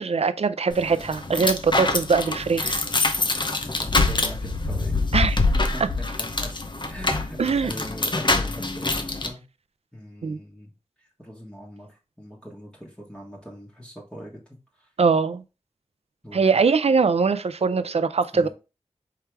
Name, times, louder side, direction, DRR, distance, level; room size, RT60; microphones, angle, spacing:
voice 1, 0.0-2.8 5.1-5.4 7.4-7.7 10.2-10.4 15.0-15.4 16.3-18.5, right 5 dB, 65° right, 0.4 m, -22 dB
sound 1, 0.7-9.3, left 3 dB, 40° left, 0.7 m, -25 dB
voice 2, 3.6-5.1 5.7-5.8 6.2-6.5 6.9-9.4 9.9-10.7 11.0-14.9 16.2-16.6 18.3-18.5, equal, 10° left, 1.4 m, -41 dB
4.6 x 3.3 x 3.3 m
wide cardioid pair, 50°, 12 cm